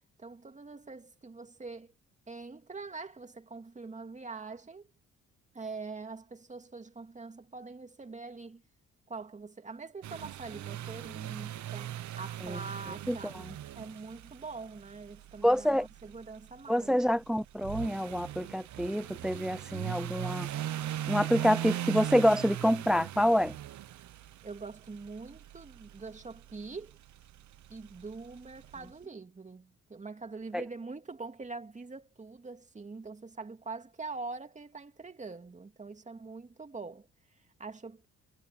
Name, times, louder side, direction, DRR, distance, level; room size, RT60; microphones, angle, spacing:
voice 1, 0.2-1.9 2.3-4.9 5.5-8.6 9.1-13.5 13.8-17.0 24.4-27.0 27.7-38.1, right 4 dB, 25° right, 2.3 m, -44 dB
sound 1, 10.0-28.9, right 12 dB, 70° right, 1.1 m, -40 dB
voice 2, 15.4-15.9 16.7-20.5 21.1-23.5, equal, ahead, 0.5 m, -27 dB
cardioid pair, 90°, 30 cm